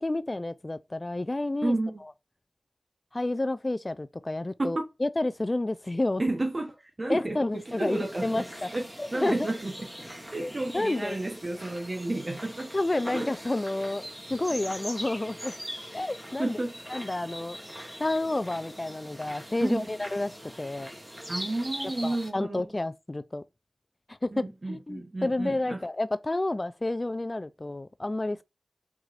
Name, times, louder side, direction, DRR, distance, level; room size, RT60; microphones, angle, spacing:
voice 1, 0.0-1.7 3.1-6.2 7.1-8.7 9.0-9.5 10.4-11.2 12.7-14.0 14.3-15.5 15.9-16.6 16.9-17.6 18.0-20.3 20.6-20.9 22.0-23.4 24.1-28.4, left 2 dB, 35° left, 0.3 m, -30 dB
voice 2, 1.6-2.0 4.6-4.8 6.2-8.4 8.7-9.9 10.3-13.3 16.4-16.9 19.6-19.9 21.3-22.6 24.3-25.8, right 2 dB, 45° right, 0.9 m, -31 dB
sound 1, 7.6-22.3, equal, 15° right, 1.9 m, -42 dB
4.7 x 3.8 x 2.5 m
cardioid pair, 45°, 0 cm